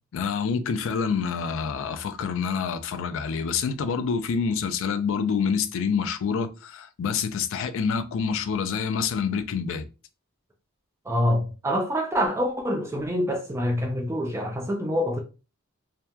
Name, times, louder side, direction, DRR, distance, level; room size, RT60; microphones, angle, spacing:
voice 1, 0.1-9.9, left 6 dB, 65° left, 0.3 m, -27 dB
voice 2, 11.1-15.2, equal, 15° right, 0.3 m, -26 dB
2.8 x 2.1 x 2.2 m
head